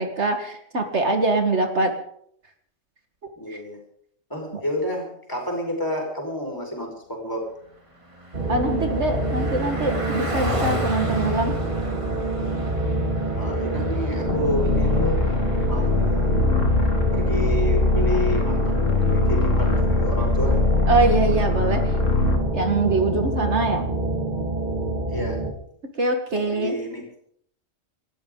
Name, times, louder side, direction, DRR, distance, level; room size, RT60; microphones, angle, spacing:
voice 1, 0.0-1.9 3.5-3.6 8.5-11.6 20.9-21.8 22.5-23.9 26.0-26.8, right 2 dB, 60° right, 5 dB, 2.0 m, -23 dB
voice 2, 3.4-3.8 4.3-7.5 13.3-15.2 15.6-16.4 17.1-20.6 25.1-25.4 26.3-27.3, left 1 dB, 15° left, 0 dB, 4.9 m, -30 dB
Car passing by, 7.4-19.2, equal, 25° right, 2.5 m, -36 dB
sound 1, 8.3-25.5, right 2 dB, 40° right, 2.2 m, -26 dB
sound 2, 14.2-22.5, left 3 dB, 75° left, 2.4 m, -22 dB
27.0 x 13.5 x 3.8 m, 0.66 s
omnidirectional pair, 1.3 m